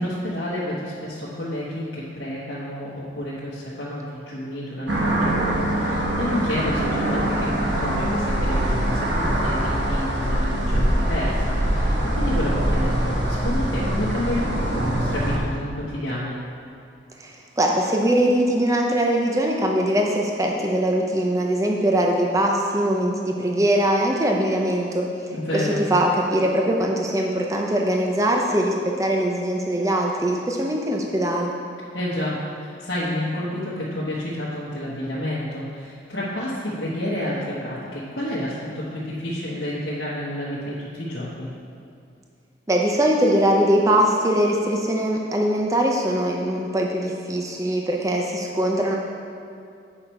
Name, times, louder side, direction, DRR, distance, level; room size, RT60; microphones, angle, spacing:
voice 1, 0.0-16.3 25.3-25.8 31.9-41.5, left 1 dB, 75° left, -9 dB, 1.3 m, -29 dB
sound 1, 4.9-15.4, right 1 dB, 65° right, 1.2 m, -23 dB
voice 2, 17.2-25.1 25.5-31.5 42.7-48.9, right 1 dB, 15° right, 0 dB, 0.6 m, -21 dB
8.9 x 5.8 x 4.5 m, 2.5 s
head